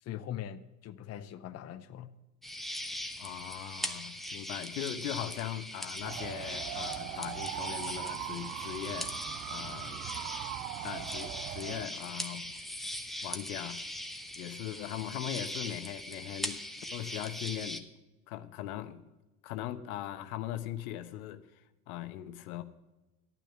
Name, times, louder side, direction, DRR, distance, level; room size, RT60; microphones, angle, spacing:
voice 1, 0.0-2.1, left 11 dB, 35° left, 10 dB, 0.7 m, -41 dB
sound 1, 2.4-17.8, left 1 dB, ahead, 1.0 m, -40 dB
voice 2, 3.2-9.1 9.5-10.1 10.8-11.3 11.5-12.6 13.2-13.8 14.4-16.6 16.9-17.9 18.3-19.0 19.4-21.5 21.9-22.6, left 12 dB, 70° left, 10 dB, 1.0 m, -39 dB
sound 2, 6.0-11.9, right 14 dB, 40° right, 0.5 m, -40 dB
12.0 x 9.1 x 5.9 m, 1.1 s
hypercardioid pair, 80°, 46 cm